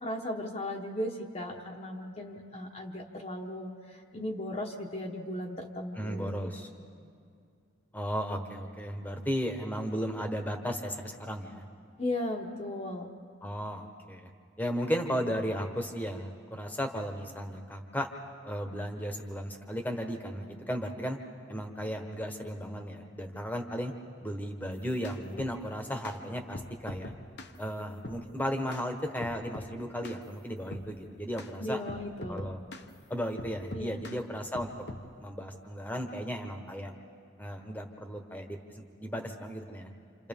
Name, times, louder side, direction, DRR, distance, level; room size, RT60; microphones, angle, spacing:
voice 1, 0.0-6.5 6.8-6.9 12.0-13.1 31.6-32.4 33.7-34.0, left 1 dB, 30° left, 0 dB, 1.1 m, -36 dB
voice 2, 5.9-6.7 7.9-11.6 13.4-14.3 14.6-18.1 18.4-21.2 21.5-23.9 24.2-27.1 27.6-31.8 32.3-32.6 33.1-34.7 35.2-36.9 37.4-39.9, equal, 10° left, 4 dB, 1.2 m, -35 dB
sound 1, 24.7-25.6 26.0-26.2 26.5-27.6 28.0-28.2 28.7-28.9 29.2-29.7 30.0-30.2 30.7-30.9 31.4-31.5 31.9-32.9 33.4-34.2 34.5-35.1, left 2 dB, 55° left, 0.9 m, -42 dB
28.0 x 28.0 x 3.6 m, 2.3 s
head